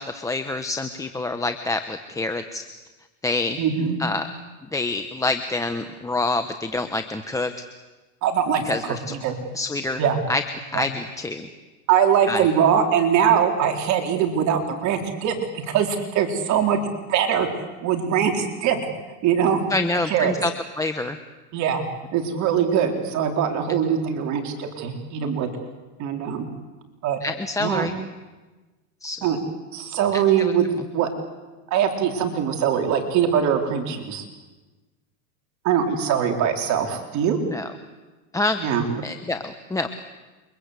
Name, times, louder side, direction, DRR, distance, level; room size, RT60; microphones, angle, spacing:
voice 1, 0.0-2.6 3.2-3.6 4.0-4.3 4.7-7.5 8.6-9.1 9.5-10.0 10.3-10.4 10.7-11.5 12.3-12.5 19.7-20.5 20.8-21.2 27.2-27.9 29.0-29.2 30.1-30.5 37.5-37.7 38.3-38.6 39.0-39.9, left 2 dB, 10° left, 7 dB, 1.1 m, -26 dB
voice 2, 3.6-4.0 8.2-9.4 10.0-10.2 10.7-10.8 11.9-16.8 17.1-18.8 19.2-19.6 20.1-20.3 21.5-21.8 22.1-25.5 26.0-26.5 27.0-27.2 27.6-27.9 29.2-29.4 29.7-30.7 30.9-31.1 31.7-34.2 35.6-37.4 38.6-38.9, right 8 dB, 45° right, 3 dB, 4.3 m, -22 dB
29.0 x 24.5 x 8.3 m, 1.2 s
supercardioid pair, 135°, 40 cm